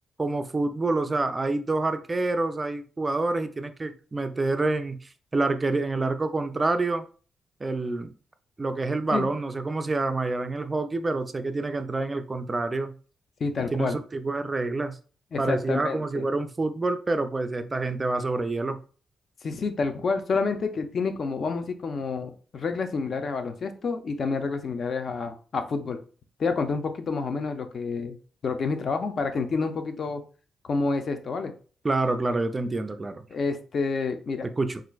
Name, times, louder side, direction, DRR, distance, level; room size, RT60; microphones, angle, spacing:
voice 1, 0.2-5.0 5.3-7.0 7.6-8.1 8.6-12.9 13.6-15.0 15.4-18.8 31.8-33.3 34.6-34.8, right 2 dB, 20° right, 8 dB, 0.3 m, -27 dB
voice 2, 13.4-14.0 15.3-16.2 19.4-26.0 26.4-28.2 28.4-30.2 30.6-31.5 33.3-34.5, left 4 dB, 50° left, 7 dB, 0.5 m, -28 dB
4.2 x 2.4 x 2.2 m, 0.39 s
cardioid pair, 125°, 0 cm